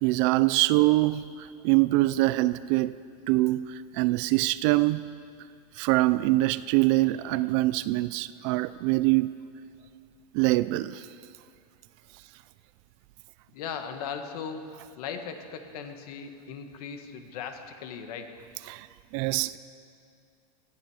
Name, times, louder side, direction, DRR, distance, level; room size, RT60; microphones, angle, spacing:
voice 1, 0.0-1.3 1.6-3.0 3.3-5.0 5.8-9.3 10.3-11.1 18.7-18.9 19.1-19.6, right 19 dB, 50° right, 0.4 m, -24 dB
voice 2, 13.5-18.4, left 6 dB, 65° left, 1.6 m, -38 dB
19.0 x 13.0 x 4.9 m
supercardioid pair, 140°, 21 cm